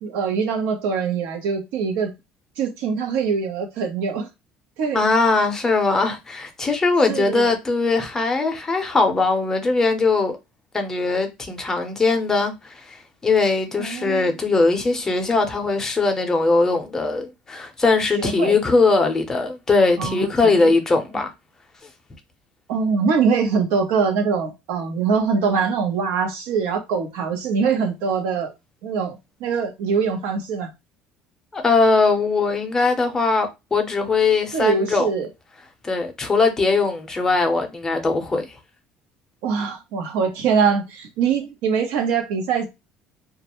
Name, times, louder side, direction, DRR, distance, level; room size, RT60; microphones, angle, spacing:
voice 1, 0.0-2.1 2.6-4.3 4.8-5.0 7.1-7.5 13.8-14.3 18.2-18.6 20.0-20.7 22.7-28.5 28.8-30.7 34.5-35.3 39.4-42.7, right 5 dB, 75° right, 0.8 m, -23 dB
voice 2, 4.9-10.4 10.7-21.3 31.5-35.1 35.8-38.5, left 3 dB, 15° left, 0.6 m, -20 dB
2.3 x 2.0 x 2.9 m
cardioid pair, 145°, 3 cm